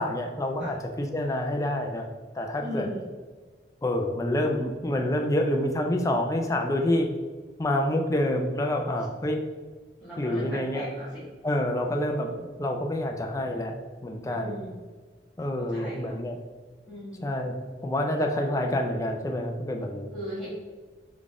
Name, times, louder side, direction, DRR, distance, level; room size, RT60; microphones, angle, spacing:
voice 1, 0.0-2.1 2.3-2.9 3.8-7.1 7.6-9.4 10.2-10.8 11.4-13.7 14.0-14.6 15.4-16.4 17.2-17.5 17.8-20.1, left 1 dB, 20° left, 3 dB, 0.4 m, -27 dB
voice 2, 2.6-3.1 10.0-11.2 14.3-14.8 15.6-16.1 16.9-17.3 20.1-20.5, equal, ahead, -14 dB, 1.4 m, -38 dB
3.8 x 3.6 x 3.6 m, 1.5 s
head